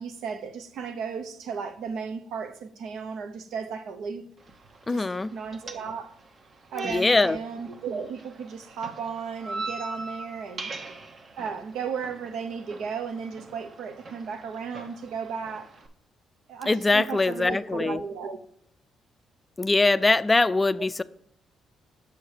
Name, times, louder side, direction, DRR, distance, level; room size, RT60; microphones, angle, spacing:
voice 1, 0.0-4.2 4.9-5.1 5.3-6.2 6.7-10.7 11.4-15.7 16.5-18.4, right 6 dB, 80° right, 0.7 m, -35 dB
sound 1, 4.4-15.9, right 3 dB, 50° right, 1.0 m, -41 dB
voice 2, 4.9-5.3 6.8-7.4 16.7-18.0 19.6-21.0, left 3 dB, 20° left, 0.3 m, -22 dB
6.8 x 4.6 x 4.8 m
cardioid pair, 90°, 0 cm